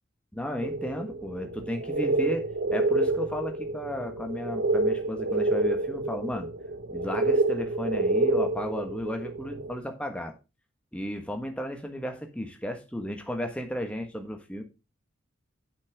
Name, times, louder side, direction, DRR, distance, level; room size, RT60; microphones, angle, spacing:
voice 1, 0.3-6.5 6.9-10.3 10.9-14.6, left 1 dB, 5° left, 4 dB, 1.4 m, -34 dB
sound 1, 0.6-9.8, right 2 dB, 55° right, 0.7 m, -28 dB
9.0 x 5.9 x 4.8 m, 0.28 s
head